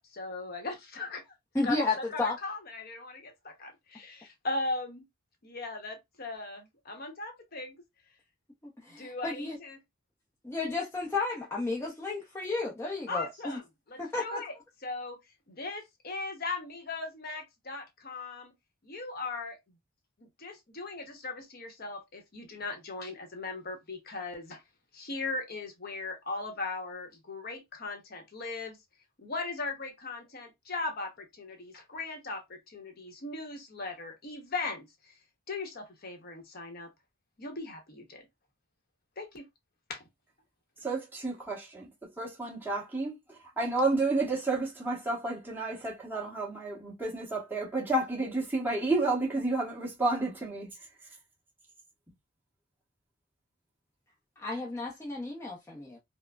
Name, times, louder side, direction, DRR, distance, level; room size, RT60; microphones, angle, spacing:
voice 1, 0.0-1.3 1.6-5.0 5.4-7.8 9.0-9.8 13.1-13.6 13.9-14.5 14.8-15.2 15.5-18.5 18.8-19.6 20.2-24.6 24.9-28.8 29.2-34.9 35.5-36.9 37.4-38.3 39.2-39.5 39.9-40.0, left 3 dB, 45° left, 0.8 m, -38 dB
voice 2, 1.5-2.4 8.8-9.6 10.4-13.6 14.0-14.4 54.4-56.0, left 3 dB, 10° left, 0.6 m, -32 dB
voice 3, 40.8-50.7, right 2 dB, 10° right, 1.1 m, -31 dB
4.7 x 2.0 x 2.3 m
head